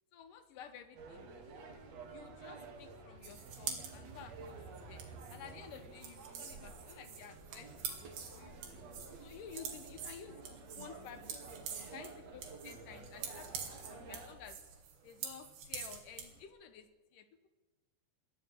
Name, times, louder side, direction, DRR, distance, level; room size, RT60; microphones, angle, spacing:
voice 1, 0.1-1.3 2.1-8.6 9.2-10.4 10.7-11.4 11.9-13.5 13.8-14.6 15.0-17.5, left 8 dB, 65° left, 10 dB, 2.3 m, -53 dB
sound 1, 1.0-14.4, right 3 dB, 45° right, 2.8 m, -51 dB
sound 2, 3.2-16.4, right 7 dB, 85° right, 4.9 m, -46 dB
21.5 x 13.0 x 9.9 m, 1.3 s
omnidirectional pair, 4.8 m